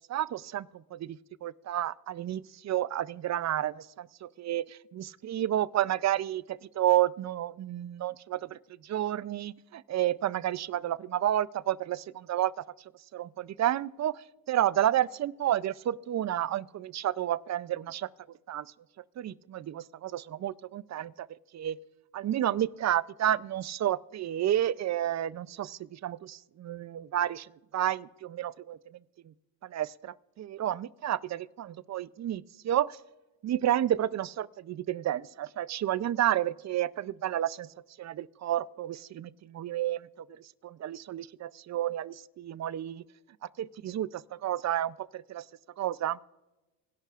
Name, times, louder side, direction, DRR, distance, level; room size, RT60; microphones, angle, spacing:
voice 1, 0.1-12.6 13.1-18.1 18.5-18.7 19.2-21.3 21.5-21.8 22.1-29.0 29.3-29.4 29.6-33.0 33.4-37.7 38.0-40.1 40.6-43.0 43.6-45.4 45.8-46.2, right 12 dB, 40° right, 0.4 m, -31 dB
25.0 x 11.5 x 2.4 m
supercardioid pair, 80°, 44 cm